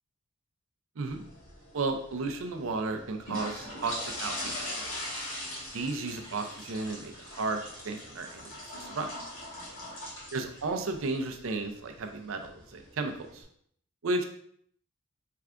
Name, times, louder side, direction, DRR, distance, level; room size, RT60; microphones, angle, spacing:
sound 1, 1.1-13.4, left 1 dB, 65° left, 1.4 m, -42 dB
voice 1, 1.7-4.7 5.7-7.6 7.8-9.1 10.3-13.4 14.0-14.2, right 3 dB, 65° right, 5 dB, 0.5 m, -33 dB
4.6 x 3.3 x 2.4 m, 0.65 s
head